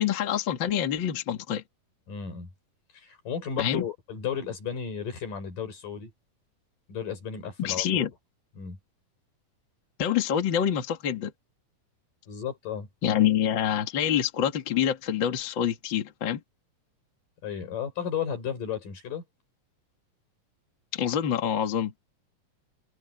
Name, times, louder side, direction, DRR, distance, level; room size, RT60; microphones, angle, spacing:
voice 1, 0.0-1.6 3.6-3.9 7.6-8.1 10.0-11.3 13.0-16.4 20.9-21.9, left 9 dB, 40° left, 2.3 m, -26 dB
voice 2, 2.1-2.5 2.9-6.1 6.9-8.0 8.6-8.8 12.3-12.9 17.4-19.2, left 7 dB, 85° left, 6.3 m, -34 dB
omnidirectional pair, 3.7 m